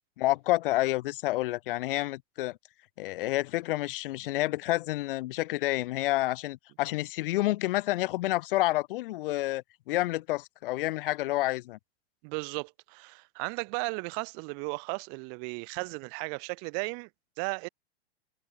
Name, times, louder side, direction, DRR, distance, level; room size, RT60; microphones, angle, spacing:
voice 1, 0.2-2.6 3.0-11.8, left 17 dB, 60° left, 7.8 m, -29 dB
voice 2, 12.2-17.1 17.4-17.7, right 40 dB or more, 50° right, 3.7 m, -35 dB
hypercardioid pair, 110°, 30 cm